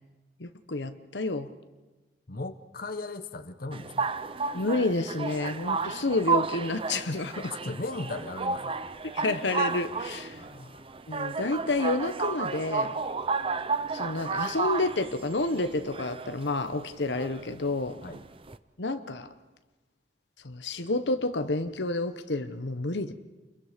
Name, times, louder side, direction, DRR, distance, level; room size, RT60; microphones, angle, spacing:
voice 1, 0.4-1.5 4.5-7.6 9.0-10.4 11.1-12.9 13.9-18.0 18.8-19.3 20.4-23.1, left 2 dB, 85° left, 9 dB, 1.1 m, -29 dB
voice 2, 2.3-4.1 7.6-8.8 10.3-10.9 18.0-18.2, left 2 dB, 55° left, 9 dB, 1.1 m, -37 dB
sound 1, 3.7-18.6, right 4 dB, 30° right, 0.7 m, -32 dB
29.5 x 22.5 x 5.2 m, 1.2 s
head